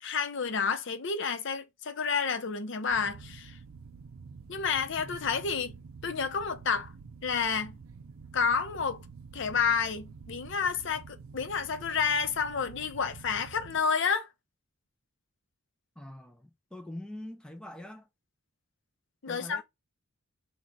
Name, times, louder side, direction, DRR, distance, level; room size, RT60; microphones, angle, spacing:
voice 1, 0.0-3.6 4.5-5.7 6.0-6.9 7.2-7.8 8.3-9.0 9.3-14.3 19.2-19.6, left 6 dB, 60° left, 0.6 m, -30 dB
sound 1, 2.9-13.8, right 5 dB, 80° right, 0.5 m, -48 dB
voice 2, 5.0-5.6 16.0-18.1 19.3-19.6, left 1 dB, 5° left, 0.4 m, -44 dB
4.0 x 2.3 x 4.6 m
head